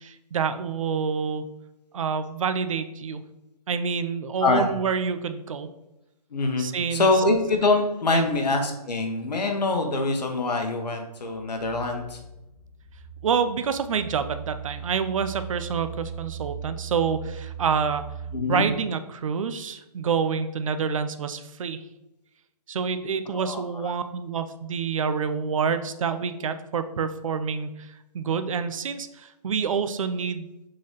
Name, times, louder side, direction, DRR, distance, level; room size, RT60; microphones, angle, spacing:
voice 1, 0.0-1.5 1.9-3.2 3.7-5.7 6.6-7.1 8.1-8.3 13.2-18.0 18.5-21.8 22.7-30.5, right 6 dB, 55° right, 10 dB, 0.4 m, -27 dB
voice 2, 6.3-6.6 6.9-12.2 18.3-18.6 23.3-23.6, left 3 dB, 85° left, 3 dB, 0.9 m, -24 dB
sound 1, 11.5-19.0, right 7 dB, 25° right, 0.8 m, -39 dB
3.9 x 3.8 x 3.2 m, 0.91 s
hypercardioid pair, 155°, 20 cm